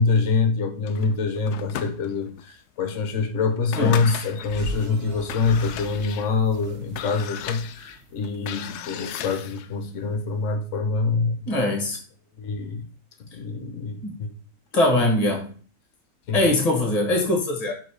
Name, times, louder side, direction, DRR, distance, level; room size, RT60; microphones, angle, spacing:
voice 1, 0.0-11.5 12.4-12.8 13.3-14.3 16.3-16.4, left 4 dB, 50° left, 6 dB, 1.2 m, -25 dB
sound 1, 0.9-2.4 2.9-3.0 3.5-4.7 5.2-9.7, left 10 dB, 70° left, 0.9 m, -36 dB
voice 2, 3.8-4.2 11.4-12.0 14.0-14.2 14.7-15.5 16.3-17.7, left 1 dB, 20° left, 1 dB, 1.6 m, -22 dB
sound 2, 4.4-8.8, equal, 70° right, 1.7 m, -39 dB
5.1 x 4.0 x 4.8 m, 0.40 s
omnidirectional pair, 2.0 m